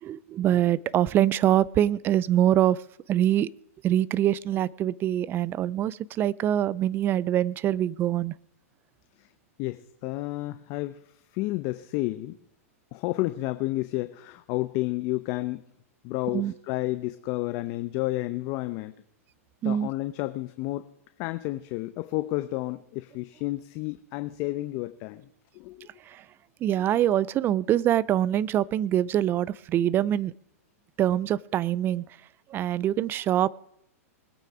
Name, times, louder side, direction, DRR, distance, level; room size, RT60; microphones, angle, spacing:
voice 1, 0.0-2.8 3.1-3.5 3.8-8.3 16.3-16.5 19.6-19.9 26.1-26.2 26.6-30.3 31.0-32.0 32.5-33.5, right 11 dB, 25° right, 22 dB, 0.4 m, -24 dB
voice 2, 9.6-11.0 11.3-12.4 12.9-15.6 16.0-18.9 19.6-20.9 21.2-25.3 25.5-25.9, left 19 dB, 45° left, 11 dB, 0.7 m, -31 dB
21.0 x 8.9 x 4.9 m, 0.79 s
hypercardioid pair, 120°, 8 cm